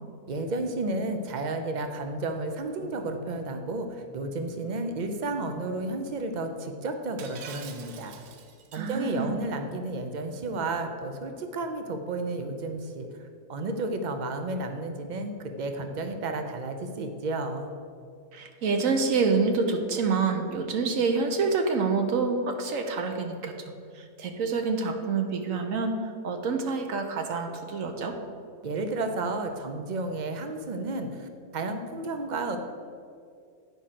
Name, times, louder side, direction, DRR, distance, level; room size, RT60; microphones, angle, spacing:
voice 1, 0.3-8.1 8.7-13.1 13.5-17.8 28.6-32.6, right 2 dB, 50° right, 6 dB, 0.5 m, -32 dB
Shatter, 7.2-8.9, right 7 dB, 85° right, 1.2 m, -45 dB
voice 2, 8.7-9.4 18.3-23.5 24.0-25.9 26.2-28.2, right 4 dB, 65° right, 5 dB, 1.1 m, -27 dB
9.4 x 5.0 x 5.8 m, 2.3 s
omnidirectional pair, 1.6 m